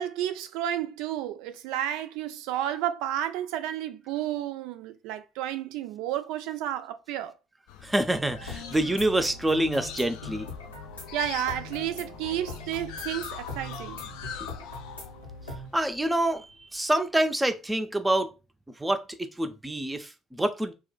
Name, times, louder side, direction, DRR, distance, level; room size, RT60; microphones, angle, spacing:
voice 1, 0.0-7.3 11.1-14.0, right 11 dB, 65° right, 0.3 m, -31 dB
sound 1, 7.7-16.8, left 8 dB, 65° left, 0.4 m, -43 dB
voice 2, 7.8-10.5 15.7-16.5 16.7-18.3 18.8-20.7, right 1 dB, 10° right, 0.5 m, -26 dB
sound 2, 8.3-15.7, left 2 dB, 85° left, 0.7 m, -41 dB
2.4 x 2.2 x 3.8 m
figure-of-eight pair, 50°, 0 cm